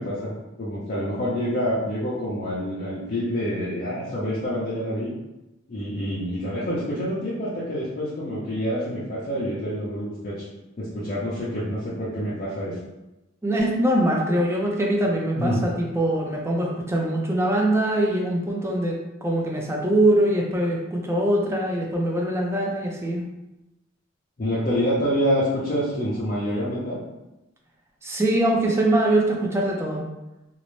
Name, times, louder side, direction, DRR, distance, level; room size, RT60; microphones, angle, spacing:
voice 1, 0.0-5.1 5.7-10.4 10.8-12.8 15.3-15.6 24.4-27.0, equal, 40° left, -9 dB, 0.5 m, -27 dB
voice 2, 13.4-23.2 28.0-30.1, right 1 dB, 15° right, -1 dB, 0.4 m, -23 dB
2.6 x 2.0 x 3.0 m, 0.98 s
head